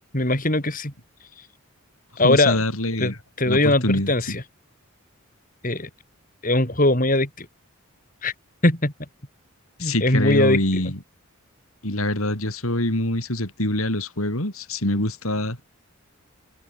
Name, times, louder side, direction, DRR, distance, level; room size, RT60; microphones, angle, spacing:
voice 1, 0.1-0.9 2.2-2.6 3.0-4.4 5.6-5.9 6.4-7.5 8.2-8.3 8.6-8.9 9.8-10.6, left 1 dB, 40° left, 5.7 m, -20 dB
voice 2, 2.2-3.2 3.4-4.4 9.8-11.0 11.8-15.6, left 1 dB, 80° left, 6.7 m, -24 dB
head